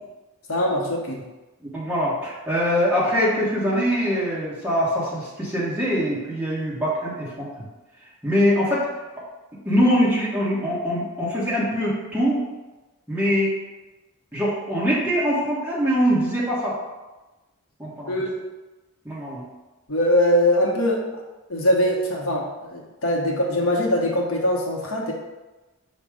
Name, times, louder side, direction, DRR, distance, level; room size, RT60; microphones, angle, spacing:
voice 1, 0.5-1.2 18.1-18.4 19.9-21.1 21.5-25.1, left 1 dB, 75° left, -2 dB, 0.8 m, -22 dB
voice 2, 1.7-7.6 8.2-8.9 9.6-12.4 13.1-13.5 14.3-16.8 17.8-18.1 19.0-19.4, equal, 5° right, -8 dB, 1.1 m, -23 dB
5.1 x 2.1 x 4.8 m, 1.1 s
head